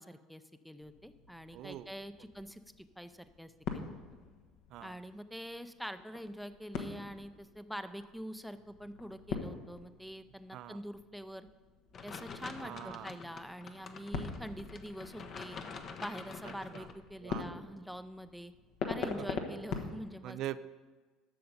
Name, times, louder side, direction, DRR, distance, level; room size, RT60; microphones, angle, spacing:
voice 1, 0.0-4.0 4.8-11.5 12.0-15.6 16.0-18.5 18.9-20.4, equal, ahead, 12 dB, 0.6 m, -45 dB
sound 1, 0.8-19.9, left 5 dB, 60° left, 1.3 m, -44 dB
voice 2, 1.5-1.9 4.7-5.0 10.5-10.8 12.6-13.1 16.7-16.9 17.2-17.5 20.2-20.7, right 13 dB, 60° right, 15 dB, 0.4 m, -42 dB
sound 2, 11.9-16.9, left 5 dB, 45° left, 0.9 m, -47 dB
12.0 x 6.8 x 5.2 m, 1.4 s
hypercardioid pair, 70°, 0 cm